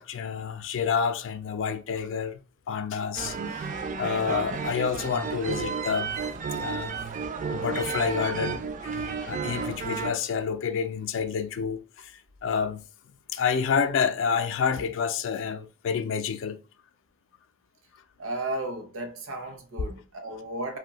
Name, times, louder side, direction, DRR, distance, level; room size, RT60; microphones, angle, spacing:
voice 1, 0.0-2.4 2.7-3.7 4.0-6.1 6.6-7.0 7.5-12.8 13.3-16.6, left 6 dB, 65° left, 0.3 m, -29 dB
sound 1, 3.1-10.1, right 5 dB, 40° right, 0.3 m, -32 dB
voice 2, 18.2-20.8, right 2 dB, 80° right, 0.7 m, -34 dB
2.6 x 2.2 x 3.8 m
head